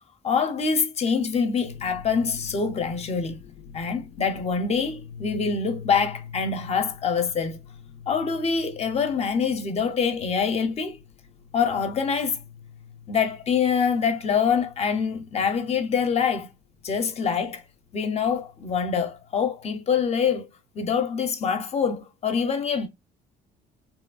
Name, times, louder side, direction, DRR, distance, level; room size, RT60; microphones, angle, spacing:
voice 1, 0.2-3.4 3.7-7.6 8.1-11.0 11.5-12.4 13.1-16.5 16.8-17.6 17.9-20.5 20.7-22.9, left 6 dB, 40° left, 0.6 m, -25 dB
sound 1, 1.6-19.9, left 7 dB, 90° left, 0.5 m, -46 dB
3.0 x 2.3 x 2.3 m
cardioid pair, 110°, 17 cm